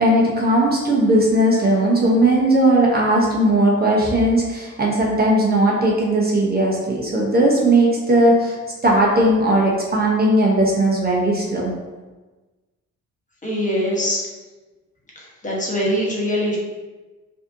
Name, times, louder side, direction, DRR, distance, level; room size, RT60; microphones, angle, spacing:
voice 1, 0.0-8.5 8.8-11.7, right 1 dB, 30° right, -2 dB, 0.8 m, -17 dB
voice 2, 13.4-14.2 15.4-16.6, equal, 25° left, -4 dB, 1.2 m, -22 dB
4.8 x 2.8 x 2.7 m, 1.2 s
cardioid pair, 90°, 30 cm